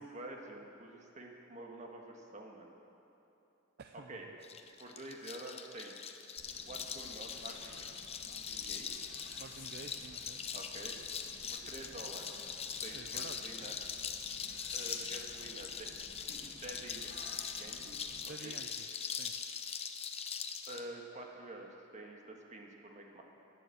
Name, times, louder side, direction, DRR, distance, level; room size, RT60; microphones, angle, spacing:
voice 1, 0.0-2.7 4.1-4.3 4.8-6.0 6.6-7.7 8.2-9.2 10.5-11.0 11.5-12.4 12.8-13.7 14.5-15.9 16.3-17.1 17.5-18.0 18.2-18.6 20.7-23.2, right 2 dB, 40° right, 1 dB, 1.5 m, -48 dB
voice 2, 3.8-4.3 9.4-10.4 12.9-13.7 18.3-19.3, right 4 dB, 55° right, 6 dB, 0.5 m, -51 dB
sound 1, 4.4-20.8, left 7 dB, 35° left, 0.7 m, -42 dB
sound 2, 6.4-18.3, left 2 dB, 60° left, 2.4 m, -54 dB
12.0 x 10.0 x 7.8 m, 3.0 s
head